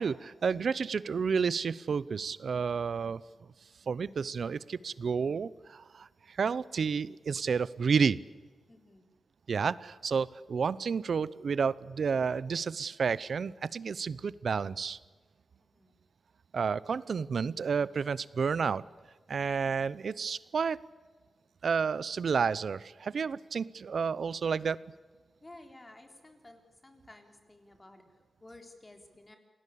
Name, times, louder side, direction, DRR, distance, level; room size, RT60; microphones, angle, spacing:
voice 1, 0.0-3.2 3.9-8.2 9.5-15.0 16.5-18.8 19.3-20.8 21.6-24.8, right 6 dB, 65° right, 20 dB, 0.7 m, -31 dB
voice 2, 8.7-9.1 15.6-15.9 25.4-29.4, left 2 dB, 25° left, 5 dB, 3.9 m, -54 dB
27.5 x 19.0 x 8.6 m, 1.4 s
wide cardioid pair, 100°, 0 cm